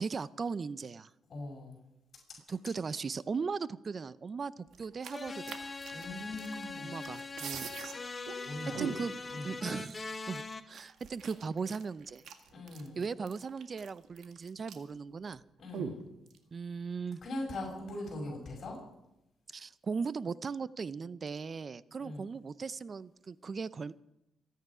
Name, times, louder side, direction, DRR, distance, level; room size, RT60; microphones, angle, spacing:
voice 1, 0.0-1.1 2.5-5.6 6.8-7.7 8.8-9.1 9.4-12.2 13.0-15.4 16.5-17.2 19.5-23.9, right 5 dB, 40° right, 17 dB, 0.6 m, -38 dB
voice 2, 1.3-1.8 5.9-6.9 8.5-8.9 9.3-9.5 12.5-13.0 15.6-16.0 17.2-18.8 22.0-22.2, left 1 dB, 45° left, -3 dB, 6.1 m, -40 dB
sound 1, 4.7-6.7 7.0-7.9 8.3-8.4 8.7-9.3 9.9-10.0 10.3-15.0 15.2-15.3 15.7-16.4, right 7 dB, 70° right, 1.8 m, -42 dB
sound 2, 5.1-10.6, left 3 dB, 25° left, 1.0 m, -42 dB
27.5 x 9.4 x 5.0 m, 0.87 s
cardioid pair, 90°, 0 cm